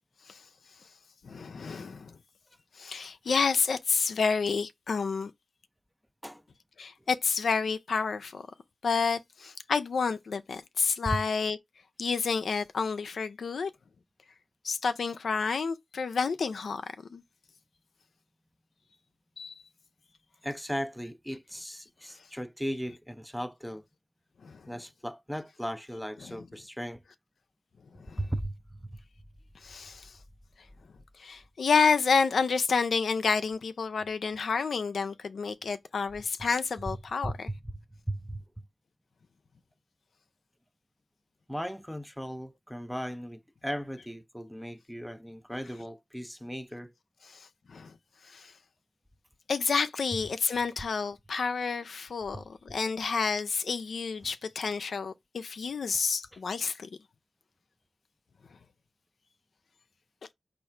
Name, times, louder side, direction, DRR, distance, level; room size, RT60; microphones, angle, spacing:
voice 1, 1.2-2.1 2.8-5.3 6.8-8.4 8.8-11.6 12.0-13.7 14.6-16.8 17.1-17.2 19.4-19.5 24.4-24.6 28.1-28.2 29.6-30.1 31.2-37.5 47.7-47.9 48.3-48.5 49.5-56.9, left 5 dB, 85° left, 0.4 m, -29 dB
voice 2, 20.4-23.8 24.7-27.0 28.2-29.0 36.9-37.0 37.2-38.4 41.5-46.9 50.1-50.2 52.3-52.4, equal, ahead, 0.4 m, -37 dB
4.7 x 2.5 x 4.3 m
wide cardioid pair, 80°, 0 cm